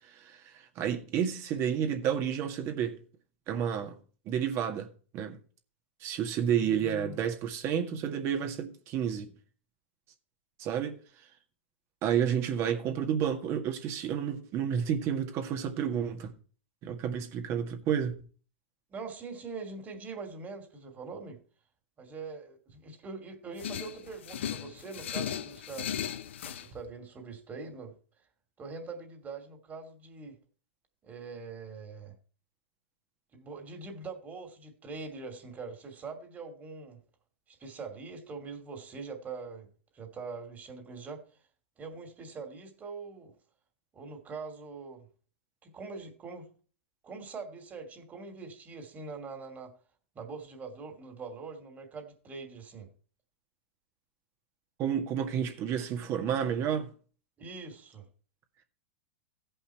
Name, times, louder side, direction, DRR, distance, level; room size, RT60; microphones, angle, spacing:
voice 1, 0.1-3.0 3.5-4.0 4.3-4.9 5.1-5.4 6.0-9.3 10.6-10.9 12.0-16.3 16.8-18.1 54.8-56.9, right 8 dB, 40° right, 1.9 m, -30 dB
voice 2, 6.6-7.2 18.9-21.4 22.0-25.9 26.4-28.0 28.6-30.4 31.0-32.2 33.3-37.0 37.5-41.2 41.8-43.3 43.9-45.1 45.6-46.5 47.0-49.7 50.1-52.9 57.4-58.1, right 4 dB, 25° right, 2.7 m, -43 dB
sound 1, 23.6-26.7, left 9 dB, 70° left, 0.7 m, -37 dB
16.0 x 5.6 x 4.5 m
hypercardioid pair, 105°, 7 cm